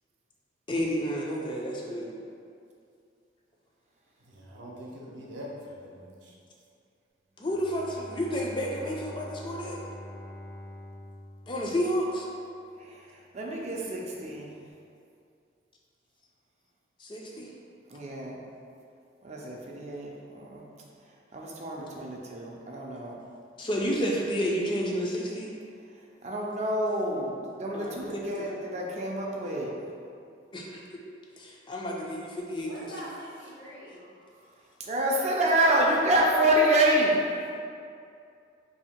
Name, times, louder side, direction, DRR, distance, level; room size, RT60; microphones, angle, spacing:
voice 1, 0.7-2.2 7.4-9.8 11.5-12.3 17.0-17.5 23.6-25.5 27.7-28.6 30.5-31.0 31.4-32.9, equal, 25° left, -2 dB, 0.4 m, -31 dB
voice 2, 4.3-6.3, equal, 75° right, -3 dB, 0.7 m, -43 dB
Bowed string instrument, 7.3-12.3, left 1 dB, 85° left, 1.0 m, -45 dB
voice 3, 13.3-14.5 17.9-18.4 19.2-20.6 21.3-23.1 26.2-29.7 34.8-37.2, right 1 dB, 35° right, -2 dB, 0.4 m, -27 dB
voice 4, 32.6-34.5 35.5-36.3, equal, 70° left, -8 dB, 1.3 m, -45 dB
2.8 x 2.7 x 4.2 m, 2.5 s
head